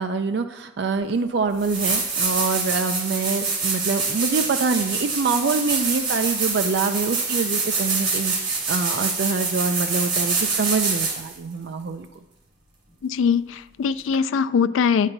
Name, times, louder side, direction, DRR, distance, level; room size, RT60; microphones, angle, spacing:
voice 1, 0.0-12.1, right 4 dB, 60° right, 8 dB, 0.4 m, -25 dB
sound 1, 1.1-1.2 1.6-11.4 14.1-14.2, right 4 dB, 85° right, 2.5 m, -25 dB
voice 2, 13.0-15.1, left 6 dB, 80° left, 14 dB, 0.3 m, -22 dB
9.8 x 7.2 x 2.6 m, 0.90 s
head